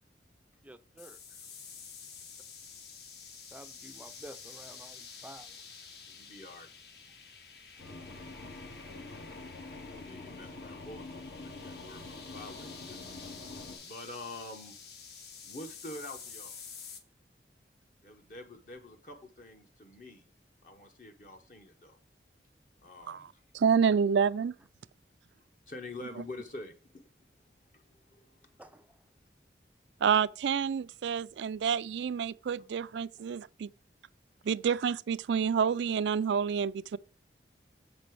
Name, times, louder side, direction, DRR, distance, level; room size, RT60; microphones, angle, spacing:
voice 1, 0.6-1.2 3.5-5.6 5.8-5.9 28.6-28.9, right 1 dB, 10° right, 0.4 m, -50 dB
sound 1, 1.0-17.0, left 6 dB, 70° left, 1.4 m, -49 dB
voice 2, 6.1-6.7 10.0-13.0 13.8-14.7 15.4-16.6 18.0-20.3 20.6-22.0 22.8-23.3 25.7-27.1 27.7-28.5, left 2 dB, 45° left, 0.8 m, -46 dB
sound 2, 7.8-13.8, left 2 dB, 85° left, 2.4 m, -46 dB
voice 3, 23.5-24.5 30.0-33.7 34.5-37.0, right 7 dB, 85° right, 0.4 m, -28 dB
7.5 x 5.3 x 4.6 m
head